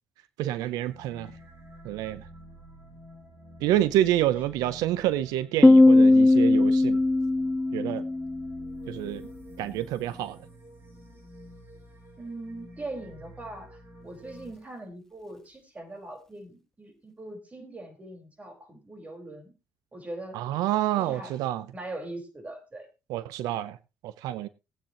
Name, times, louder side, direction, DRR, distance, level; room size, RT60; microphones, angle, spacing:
voice 1, 0.4-1.3 1.8-2.3 3.6-7.0 7.7-8.0 8.9-9.3 9.6-10.4 20.3-21.6 23.1-23.8 24.0-24.5, right 13 dB, 85° right, 0.6 m, -28 dB
sound 1, 0.9-14.5, right 1 dB, 40° right, 5.9 m, -49 dB
Piano, 5.6-9.1, left 2 dB, 10° left, 0.8 m, -19 dB
voice 2, 12.2-19.5 19.9-20.4 21.0-21.4 21.7-22.9, right 2 dB, 20° right, 4.6 m, -41 dB
19.0 x 8.8 x 2.9 m
cardioid pair, 90°, 6 cm